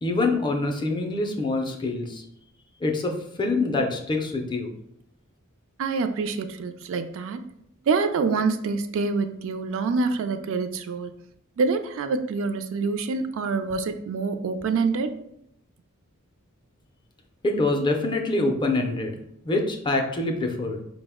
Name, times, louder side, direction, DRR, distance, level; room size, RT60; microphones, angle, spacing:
voice 1, 0.0-2.2 2.8-4.7 17.4-19.1 19.4-20.8, left 2 dB, 20° left, 3 dB, 0.4 m, -25 dB
voice 2, 5.8-7.4 7.8-11.1 11.6-15.2, right 4 dB, 60° right, 8 dB, 0.3 m, -26 dB
4.9 x 2.0 x 3.4 m, 0.76 s
head